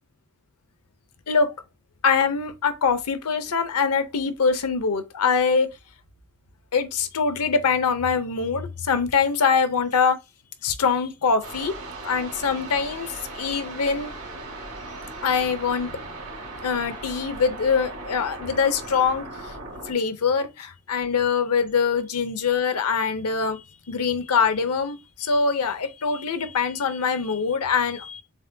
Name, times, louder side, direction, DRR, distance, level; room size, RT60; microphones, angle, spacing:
voice 1, 2.0-5.7 6.7-10.2 10.6-11.7 12.0-14.1 15.2-15.9 16.6-19.6 19.8-28.2, left 5 dB, 85° left, 0.7 m, -23 dB
sound 1, 11.4-19.9, right 2 dB, 80° right, 2.5 m, -38 dB
7.1 x 2.6 x 2.2 m
head